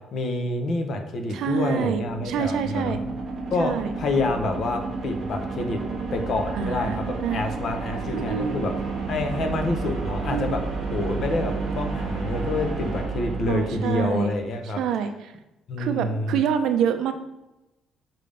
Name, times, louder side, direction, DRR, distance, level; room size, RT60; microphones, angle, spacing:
voice 1, 0.1-3.0 3.5-5.8 6.1-8.7 9.1-10.6 10.9-14.8 15.7-16.3, left 2 dB, 40° left, 5 dB, 0.8 m, -27 dB
sound 1, 1.3-14.3, right 4 dB, 35° right, 1.4 m, -31 dB
voice 2, 1.3-3.0 3.6-3.9 6.5-7.4 8.1-8.7 10.3-10.6 13.5-14.3 14.6-15.3 15.8-17.1, right 8 dB, 60° right, 8 dB, 0.5 m, -26 dB
5.6 x 3.5 x 5.1 m, 0.96 s
cardioid pair, 175°, 0 cm